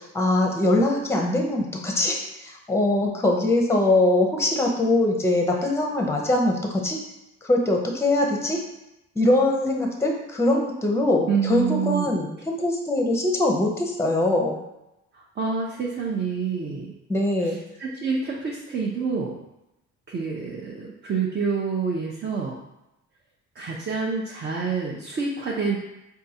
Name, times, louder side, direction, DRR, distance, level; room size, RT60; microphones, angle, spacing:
voice 1, 0.0-7.0 7.4-8.6 9.2-14.5 17.1-17.6, left 1 dB, 10° left, 1 dB, 0.6 m, -22 dB
voice 2, 11.3-12.1 15.1-16.9 17.8-19.4 20.1-22.6 23.6-25.8, right 5 dB, 35° right, -2 dB, 0.6 m, -27 dB
4.6 x 2.3 x 2.7 m, 0.92 s
cardioid pair, 90°, 30 cm